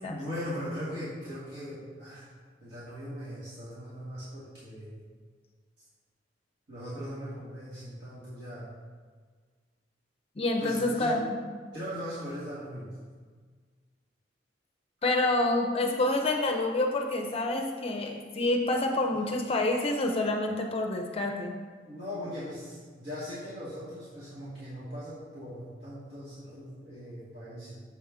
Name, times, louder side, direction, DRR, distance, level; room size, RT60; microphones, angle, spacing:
voice 1, 0.1-2.3 2.6-5.0 6.7-8.7 10.6-11.2 11.7-13.0 21.9-27.8, equal, 65° right, -10 dB, 2.0 m, -39 dB
voice 2, 10.4-11.4 15.0-21.6, left 2 dB, 35° left, 2 dB, 0.6 m, -28 dB
7.0 x 5.8 x 3.7 m, 1.5 s
head